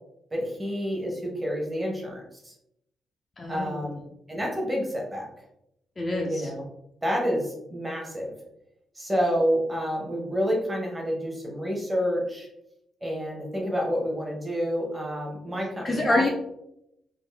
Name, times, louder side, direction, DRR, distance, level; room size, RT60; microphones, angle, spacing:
voice 1, 0.3-2.5 3.5-4.0 4.3-5.3 6.3-6.6 7.0-8.3 8.9-12.5 13.0-16.3, equal, 15° right, -1 dB, 0.8 m, -28 dB
voice 2, 3.4-3.8 6.0-6.5 15.8-16.3, left 2 dB, 20° left, 0 dB, 0.4 m, -26 dB
3.6 x 2.5 x 3.2 m, 0.81 s
wide cardioid pair, 170°, 0 cm